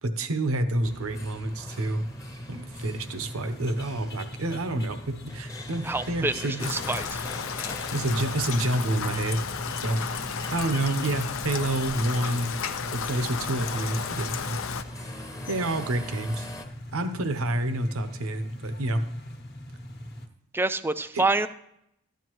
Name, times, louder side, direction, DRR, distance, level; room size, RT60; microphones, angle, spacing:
voice 1, 0.0-2.0 2.5-6.8 7.9-9.4 9.8-10.0 10.5-12.5 12.9-14.6 15.5-16.5 16.9-19.0, right 1 dB, 80° right, 9 dB, 0.9 m, -28 dB
sound 1, 0.8-20.3, left 1 dB, 45° left, 1.2 m, -42 dB
sound 2, 0.8-16.6, left 1 dB, 15° left, 0.9 m, -44 dB
voice 2, 5.8-7.2 7.5-7.8 20.5-21.5, right 3 dB, 10° right, 13 dB, 0.3 m, -27 dB
Rain, 6.6-14.8, left 6 dB, 70° left, 0.6 m, -33 dB
13.0 x 9.4 x 3.1 m, 0.77 s
head